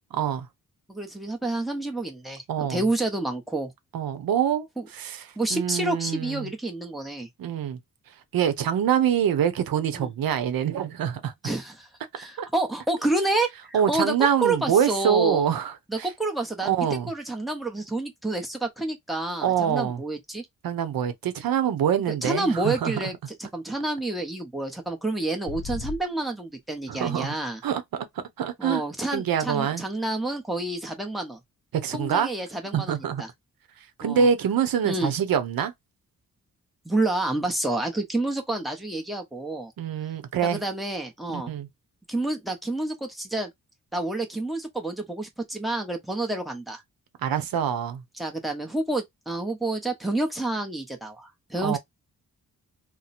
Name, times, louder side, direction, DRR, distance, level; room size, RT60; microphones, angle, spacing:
voice 1, 0.1-0.5 2.5-2.8 3.9-4.7 4.9-5.2 5.5-6.5 7.4-7.8 8.3-11.3 12.4-12.5 13.7-16.1 16.6-17.1 19.4-20.0 20.6-22.9 26.9-27.3 27.6-28.1 28.4-28.8 29.1-29.8 31.7-32.3 32.7-33.2 34.0-35.7 39.8-40.6 41.3-41.7 47.2-48.0 51.6-51.8, right 8 dB, 85° right, 0.7 m, -25 dB
voice 2, 0.9-3.7 4.8-4.9 5.4-7.3 9.9-10.1 11.4-11.9 12.2-14.1 14.4-15.5 15.9-20.5 22.2-27.6 28.6-31.4 31.9-33.3 34.0-34.3 34.8-35.1 36.8-39.7 40.4-41.5 42.1-43.5 43.9-46.8 48.2-51.8, right 2 dB, ahead, 0.8 m, -29 dB
sound 1, 25.4-26.0, left 4 dB, 50° left, 0.7 m, -34 dB
2.9 x 2.1 x 4.0 m
wide cardioid pair, 140°, 34 cm